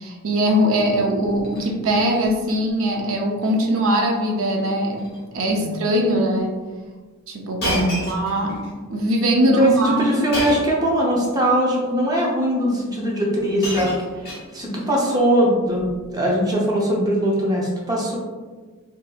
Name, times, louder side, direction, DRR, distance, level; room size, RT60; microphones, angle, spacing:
voice 1, 0.0-5.1 5.3-6.5 7.3-10.1, equal, 65° right, 1 dB, 0.6 m, -21 dB
Shatter, 1.2-1.7 2.1-2.5 2.9-3.1 3.4-3.5 4.4-4.6 4.9-5.2 5.9-6.0 7.6-8.7 10.3-10.8 11.8-11.9 13.0-13.1 13.3-14.8 15.8-16.1, equal, 50° left, 1.1 m, -30 dB
voice 2, 7.6-8.0 9.6-14.0 14.2-15.9 16.1-18.2, equal, 20° right, -3 dB, 0.6 m, -21 dB
3.8 x 2.7 x 2.4 m, 1.4 s
head